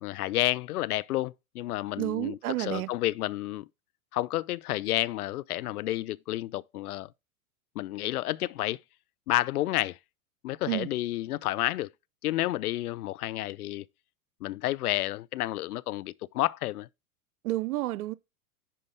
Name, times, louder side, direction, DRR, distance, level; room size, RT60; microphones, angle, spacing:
voice 1, 0.0-3.7 4.1-7.1 7.8-8.8 9.3-10.0 10.4-11.9 12.2-13.8 14.4-16.9, left 15 dB, 75° left, 0.6 m, -30 dB
voice 2, 2.0-2.9 10.7-10.9 17.4-18.1, right 17 dB, 70° right, 0.7 m, -30 dB
10.0 x 5.0 x 3.3 m
hypercardioid pair, 100°, 45 cm